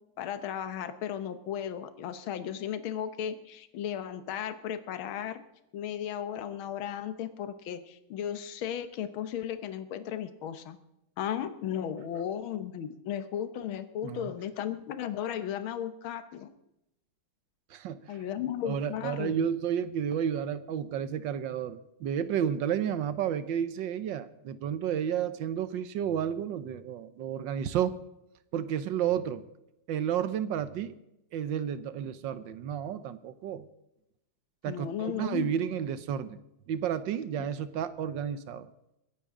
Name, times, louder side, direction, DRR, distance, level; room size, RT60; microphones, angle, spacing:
voice 1, 0.2-5.4 5.7-10.8 11.2-16.5 18.1-19.5 34.7-35.5, left 9 dB, 75° left, 11 dB, 1.8 m, -35 dB
voice 2, 17.7-18.2 18.6-28.0 28.5-29.4 29.9-30.9 31.3-33.7 34.6-36.4 36.7-38.7, right 9 dB, 70° right, 13 dB, 1.4 m, -31 dB
22.5 x 10.0 x 3.7 m, 0.86 s
omnidirectional pair, 2.3 m